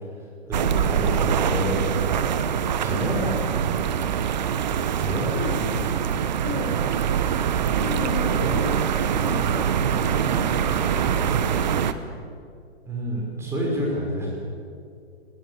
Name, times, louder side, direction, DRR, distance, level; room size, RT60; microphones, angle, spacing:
voice 1, 0.4-1.8 2.8-3.4 4.9-5.8 12.8-14.4, equal, 10° right, -2 dB, 5.7 m, -28 dB
sound 1, 0.5-11.9, right 8 dB, 40° right, 1.2 m, -24 dB
voice 2, 5.3-6.0 6.4-6.8 7.2-7.3 7.8-11.7, left 5 dB, 20° left, -1 dB, 2.9 m, -35 dB
24.0 x 19.5 x 8.3 m, 2.3 s
figure-of-eight pair, 125°, 33 cm